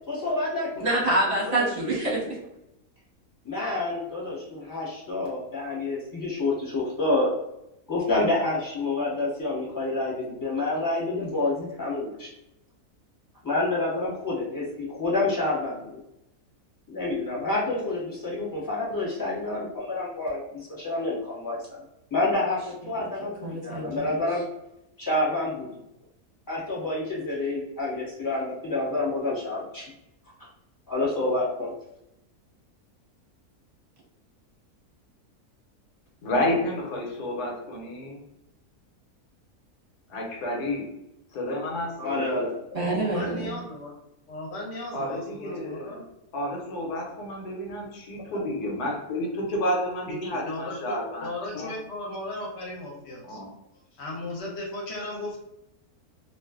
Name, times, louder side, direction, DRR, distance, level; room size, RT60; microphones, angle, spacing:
voice 1, 0.1-0.9 1.5-1.7 3.4-7.3 7.9-12.3 13.4-16.0 16.9-21.6 22.1-24.4 25.0-25.8 26.5-29.9 30.9-31.7 42.0-42.5, left 2 dB, 15° left, -7 dB, 0.8 m, -28 dB
voice 2, 0.8-2.4 23.0-23.1 23.4-24.1 42.7-43.5, right 2 dB, 30° right, -6 dB, 0.8 m, -26 dB
voice 3, 36.2-38.2 40.1-40.9 41.3-42.4 44.9-46.0 46.3-51.7 53.3-53.5, left 1 dB, 85° left, 0 dB, 1.2 m, -30 dB
voice 4, 42.8-43.9 44.3-46.1 48.3-48.5 50.1-50.2 50.4-50.9 51.2-53.4 53.9-55.4, left 1 dB, 55° left, -2 dB, 0.9 m, -36 dB
2.4 x 2.4 x 2.3 m, 0.86 s
omnidirectional pair, 1.6 m